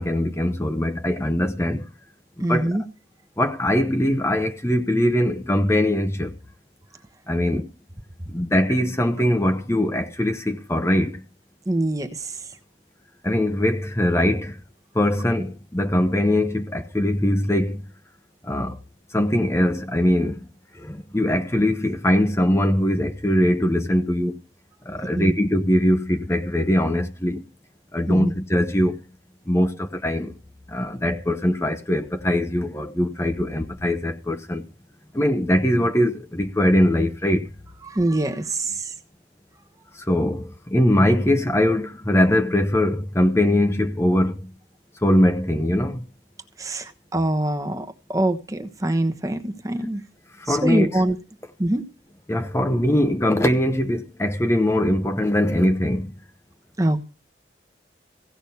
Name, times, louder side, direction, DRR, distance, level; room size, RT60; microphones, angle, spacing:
voice 1, 0.0-1.8 2.4-2.7 3.4-6.3 7.3-7.7 8.3-11.2 13.2-14.6 14.9-17.8 18.5-18.8 19.1-20.4 20.8-24.4 24.9-27.4 27.9-29.0 29.5-30.3 30.7-34.6 35.1-37.5 40.1-44.4 45.0-46.0 50.5-51.0 52.3-56.1, left 1 dB, 15° left, 0.8 m, -21 dB
voice 2, 2.4-2.8 11.7-12.4 25.1-25.3 28.1-28.3 37.9-38.9 46.6-50.0 50.5-51.2 51.6-51.8 56.8-57.0, right 1 dB, 20° right, 1.1 m, -24 dB
16.0 x 6.1 x 7.0 m
head